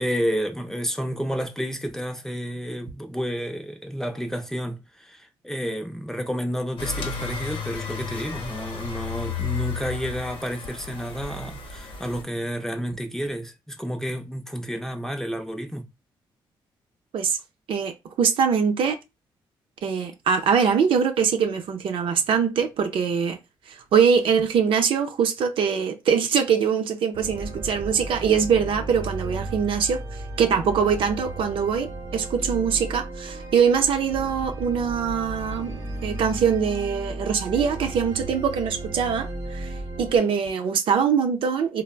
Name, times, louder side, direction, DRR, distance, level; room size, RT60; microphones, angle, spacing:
voice 1, 0.0-15.8, equal, 5° left, 0.5 m, -30 dB
sound 1, 6.8-12.2, left 6 dB, 65° left, 0.7 m, -33 dB
voice 2, 17.7-19.0 19.8-23.4 23.7-39.7 40.0-41.8, right 7 dB, 70° right, 0.6 m, -23 dB
sound 2, 27.1-40.2, right 2 dB, 40° right, 0.9 m, -34 dB
3.3 x 2.0 x 2.3 m
cardioid pair, 80°, 9 cm